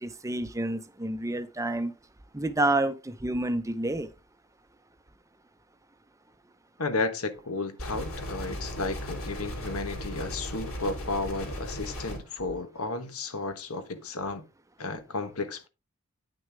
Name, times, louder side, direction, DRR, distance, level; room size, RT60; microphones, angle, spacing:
voice 1, 0.0-1.9 2.3-4.1, right 2 dB, 15° right, 0.7 m, -29 dB
voice 2, 6.8-14.4 14.8-15.7, left 3 dB, 90° left, 1.3 m, -33 dB
sound 1, 7.8-12.2, equal, 70° left, 3.2 m, -36 dB
9.3 x 6.4 x 3.5 m
head